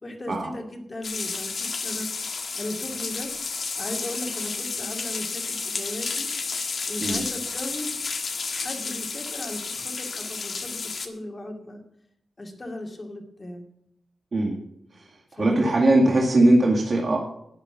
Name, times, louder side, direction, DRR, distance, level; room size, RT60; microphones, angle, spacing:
voice 1, 0.0-2.1 2.5-3.3 3.8-6.3 6.9-7.9 8.5-11.8 12.4-13.6 15.3-15.7, left 1 dB, 30° left, 3 dB, 2.4 m, -36 dB
sound 1, 1.0-11.1, left 4 dB, 60° left, 1.6 m, -31 dB
voice 2, 15.4-17.2, right 1 dB, 50° right, -1 dB, 2.1 m, -20 dB
12.0 x 9.1 x 5.9 m, 0.78 s
cardioid pair, 80°, 0 cm